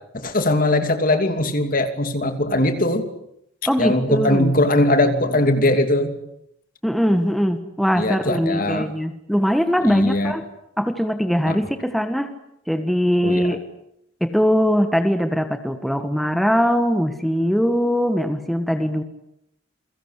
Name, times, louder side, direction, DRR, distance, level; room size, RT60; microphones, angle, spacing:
voice 1, 0.1-3.1 3.8-6.2 8.0-8.9 9.8-10.3 11.4-11.6 13.2-13.5, left 1 dB, 45° left, 8 dB, 2.9 m, -20 dB
voice 2, 3.7-4.5 6.8-10.4 10.8-12.3 12.7-13.6 14.2-19.0, equal, ahead, 7 dB, 1.6 m, -21 dB
28.5 x 23.0 x 8.3 m, 0.77 s
head